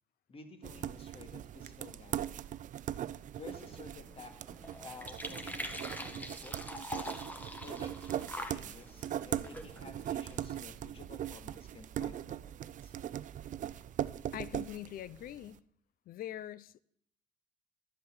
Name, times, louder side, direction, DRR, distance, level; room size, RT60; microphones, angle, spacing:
voice 1, 0.3-2.4 3.3-4.3 4.8-6.6 7.6-12.9, left 4 dB, 35° left, 2.1 m, -53 dB
sound 1, 0.6-15.5, right 11 dB, 50° right, 0.5 m, -40 dB
sound 2, 3.4-10.6, left 1 dB, 10° left, 1.6 m, -45 dB
voice 2, 14.3-15.6 16.1-16.8, left 12 dB, 60° left, 0.6 m, -43 dB
12.5 x 7.6 x 7.2 m
cardioid pair, 110°, 17 cm